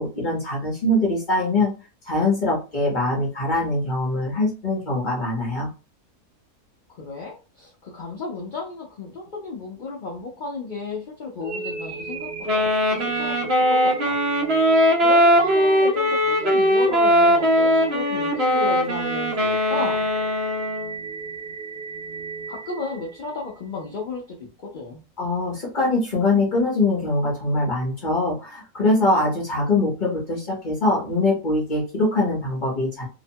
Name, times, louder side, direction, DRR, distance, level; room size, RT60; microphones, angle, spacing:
voice 1, 0.0-1.7 2.0-5.7 25.2-33.0, left 2 dB, 40° left, -3 dB, 0.8 m, -23 dB
voice 2, 7.0-14.2 15.0-20.1 22.5-25.0, left 3 dB, 70° left, -2 dB, 0.4 m, -33 dB
sound 1, 11.4-23.5, right 4 dB, 75° right, 0.4 m, -36 dB
Wind instrument woodwind instrument, 12.5-21.0, equal, 50° right, 0.9 m, -20 dB
2.9 x 2.1 x 2.7 m, 0.33 s
omnidirectional pair, 1.7 m